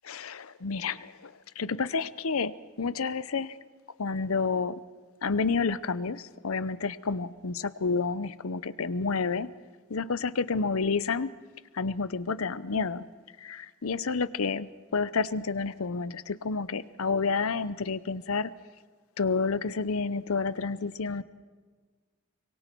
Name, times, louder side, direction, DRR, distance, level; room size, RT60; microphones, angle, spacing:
voice 1, 0.1-3.6 4.0-4.8 5.2-9.5 9.9-11.3 11.7-13.0 13.4-18.5 19.2-21.2, left 4 dB, 80° left, 16 dB, 0.7 m, -30 dB
24.5 x 23.0 x 4.6 m, 1.5 s
head